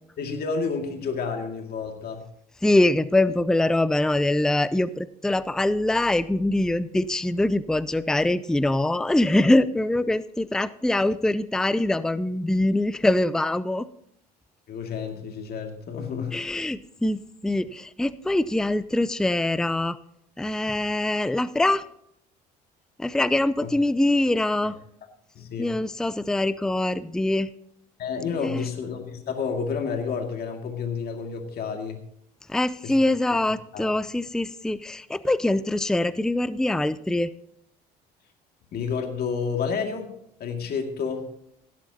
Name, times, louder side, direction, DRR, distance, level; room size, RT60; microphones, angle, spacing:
voice 1, 0.2-2.3 14.7-16.4 23.6-23.7 25.4-25.7 28.0-32.0 32.8-33.0 33.3-33.4 33.7-33.9 38.7-40.1 40.4-41.3, left 5 dB, 55° left, 3 dB, 2.2 m, -30 dB
voice 2, 2.6-13.9 16.3-20.0 20.4-21.8 23.0-24.8 25.6-27.5 28.4-28.6 32.5-37.3, left 1 dB, 5° left, 16 dB, 0.5 m, -23 dB
16.0 x 11.5 x 2.8 m, 0.73 s
hypercardioid pair, 70°, 20 cm